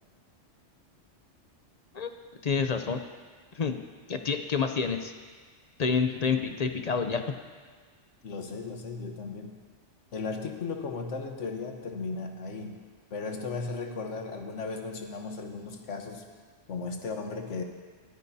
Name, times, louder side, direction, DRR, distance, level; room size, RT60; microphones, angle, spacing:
voice 1, 2.4-3.0 3.6-3.8 4.1-5.1 5.8-7.2, left 5 dB, 45° left, 7 dB, 0.6 m, -28 dB
voice 2, 6.2-6.5 8.2-9.6 10.1-12.8 13.1-16.3 16.7-17.6, left 4 dB, 75° left, 4 dB, 1.4 m, -36 dB
23.0 x 9.1 x 2.8 m, 1.5 s
omnidirectional pair, 1.2 m